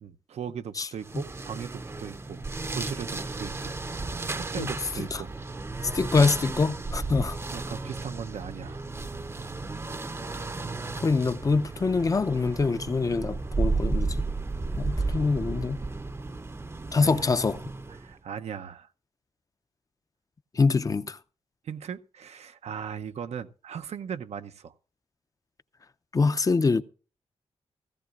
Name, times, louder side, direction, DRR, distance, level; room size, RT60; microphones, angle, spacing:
voice 1, 0.0-2.4 2.7-3.8 4.3-5.3 7.5-8.8 9.4-9.5 14.9-15.2 15.8-15.9 17.0-17.3 18.0-18.9 21.6-24.7, right 8 dB, 85° right, 0.7 m, -38 dB
sound 1, 1.0-18.1, right 3 dB, 25° right, 0.6 m, -33 dB
voice 2, 5.9-7.4 11.0-14.2 14.7-15.8 16.9-17.6 20.5-21.2 26.1-26.8, left 4 dB, 30° left, 0.6 m, -24 dB
16.5 x 15.0 x 2.4 m
wide cardioid pair, 120°, 11 cm